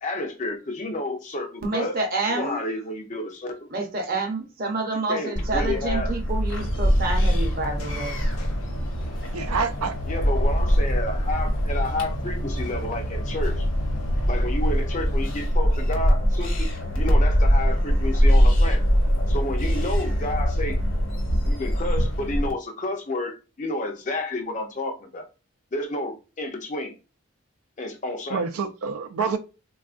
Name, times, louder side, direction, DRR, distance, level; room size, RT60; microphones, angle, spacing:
voice 1, 0.0-1.9 2.3-3.7 4.9-6.1 10.1-13.7 14.3-16.7 16.9-18.9 19.3-20.8 21.4-25.2 25.7-26.9 27.8-28.4, left 2 dB, 35° left, 0.5 m, -30 dB
voice 2, 1.6-2.6 3.7-8.2, right 3 dB, 40° right, 0.7 m, -28 dB
sound 1, 5.4-22.5, equal, 65° left, 1.0 m, -23 dB
sound 2, 6.6-15.4, equal, 90° left, 0.6 m, -35 dB
voice 3, 9.3-10.0 28.3-29.4, right 5 dB, 85° right, 0.4 m, -27 dB
3.5 x 2.3 x 2.4 m
head